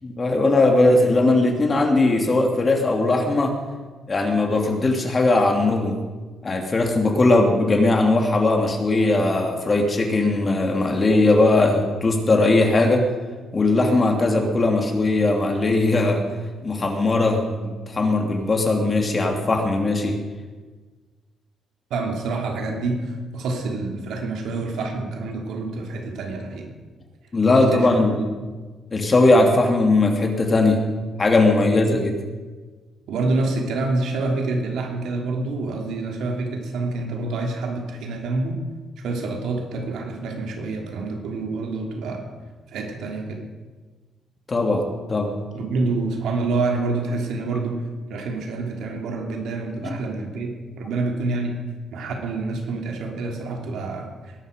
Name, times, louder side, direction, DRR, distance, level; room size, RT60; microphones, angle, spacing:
voice 1, 0.0-3.6 4.1-6.0 6.4-13.1 13.5-16.2 16.6-20.2 27.3-28.2 28.9-30.8 31.2-32.1 44.5-45.4 49.8-50.0, left 2 dB, 30° left, 3 dB, 2.9 m, -19 dB
voice 2, 21.9-26.7 27.7-28.3 31.6-32.1 33.1-38.6 39.0-42.3 42.7-43.4 45.5-47.8 48.1-51.6 51.9-54.5, right 3 dB, 80° right, 2 dB, 3.1 m, -27 dB
20.0 x 11.5 x 5.3 m, 1.3 s
cardioid pair, 90°, 0 cm